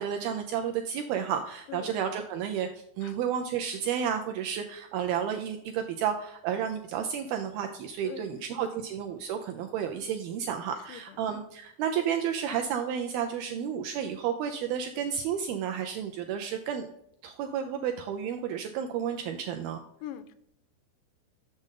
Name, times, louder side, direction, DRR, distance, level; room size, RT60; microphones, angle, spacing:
voice 1, 0.0-16.9 17.2-19.8, right 8 dB, 85° right, 5 dB, 2.2 m, -31 dB
voice 2, 8.0-8.8 10.9-11.2 13.5-13.7 20.0-20.4, left 9 dB, 90° left, 11 dB, 2.8 m, -44 dB
7.4 x 6.5 x 3.7 m, 0.75 s
omnidirectional pair, 4.9 m